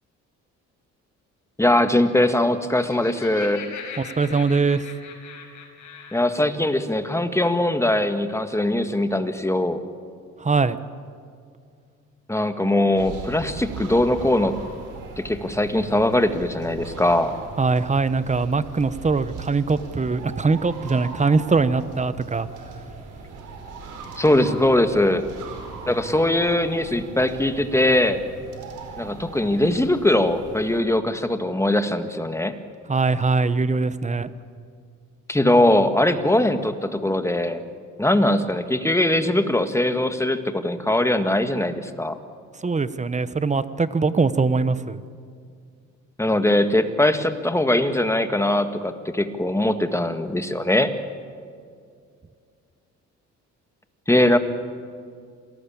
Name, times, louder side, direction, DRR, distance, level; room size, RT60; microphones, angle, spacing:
voice 1, 1.6-3.7 6.1-9.8 12.3-14.6 15.2-17.3 24.2-25.2 25.9-28.2 29.0-32.6 35.3-37.6 38.0-42.2 46.2-50.9 54.1-54.4, left 1 dB, 10° left, 8 dB, 1.8 m, -21 dB
Laughter, 2.6-6.4, left 6 dB, 75° left, 5.3 m, -40 dB
voice 2, 4.0-4.8 10.4-10.8 17.6-22.5 32.9-34.3 42.6-45.0, right 4 dB, 25° right, 14 dB, 1.1 m, -22 dB
sound 1, 13.0-30.8, right 4 dB, 80° right, 5.0 m, -39 dB
27.5 x 18.5 x 8.7 m, 2.2 s
cardioid pair, 90°, 30 cm